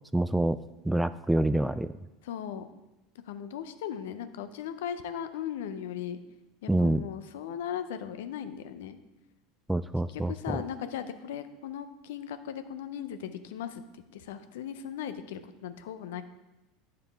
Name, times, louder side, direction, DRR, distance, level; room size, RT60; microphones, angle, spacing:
voice 1, 0.1-0.6 0.8-1.9 6.7-7.0 9.7-10.6, right 1 dB, 5° right, 14 dB, 0.3 m, -26 dB
voice 2, 2.2-2.7 3.3-6.2 6.6-9.0 10.1-13.8 14.1-16.2, left 9 dB, 70° left, 10 dB, 0.6 m, -37 dB
9.8 x 6.7 x 3.5 m, 1.0 s
hypercardioid pair, 80°, 0 cm